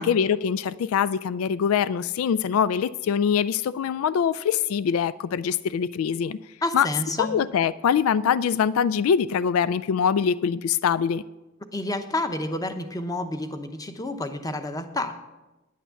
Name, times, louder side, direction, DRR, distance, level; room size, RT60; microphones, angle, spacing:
voice 1, 0.0-6.4 6.7-6.9 7.2-11.2, left 7 dB, 90° left, 0.3 m, -23 dB
voice 2, 6.6-7.4 11.7-15.1, left 2 dB, 20° left, 0.8 m, -29 dB
10.0 x 8.6 x 6.9 m
head